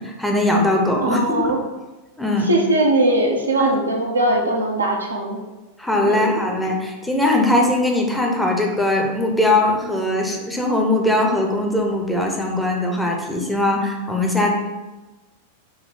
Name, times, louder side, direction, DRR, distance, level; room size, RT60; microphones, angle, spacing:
voice 1, 0.0-1.5 2.2-2.5 3.6-3.7 5.8-14.5, left 1 dB, 5° left, 0 dB, 0.7 m, -20 dB
voice 2, 1.0-1.6 2.4-5.4 6.1-6.3, right 1 dB, 75° right, 1 dB, 0.6 m, -20 dB
5.4 x 2.2 x 3.9 m, 1.1 s
figure-of-eight pair, 90°, 0 cm